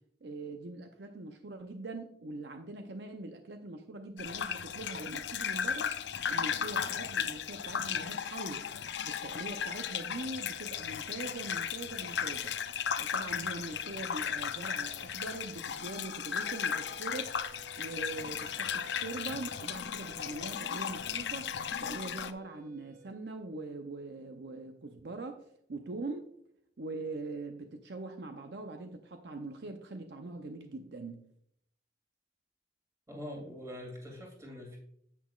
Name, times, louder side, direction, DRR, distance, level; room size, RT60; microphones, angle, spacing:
voice 1, 0.2-5.9 6.3-8.7 9.0-12.6 13.0-17.3 17.8-21.5 21.8-26.3 26.8-31.2, right 2 dB, 65° right, 6 dB, 0.6 m, -42 dB
sound 1, 4.2-22.3, left 7 dB, 75° left, 0.5 m, -36 dB
sound 2, 16.4-23.1, right 5 dB, 45° right, 3.2 m, -57 dB
voice 2, 33.1-34.8, left 1 dB, 15° right, -1 dB, 2.5 m, -43 dB
9.8 x 8.4 x 2.4 m, 0.70 s
head